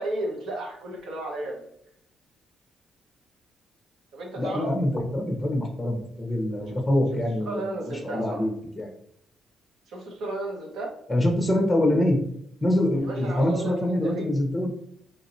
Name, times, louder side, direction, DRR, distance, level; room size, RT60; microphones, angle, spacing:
voice 1, 0.0-1.6 4.1-4.7 6.3-6.8 7.4-8.5 9.9-10.9 13.0-14.2, right 2 dB, 75° right, 0 dB, 1.2 m, -34 dB
voice 2, 4.4-7.7 8.0-8.9 11.1-12.2 12.6-14.7, left 1 dB, 5° left, 1 dB, 1.0 m, -25 dB
3.6 x 2.8 x 2.7 m, 0.70 s
cardioid pair, 90°, 0 cm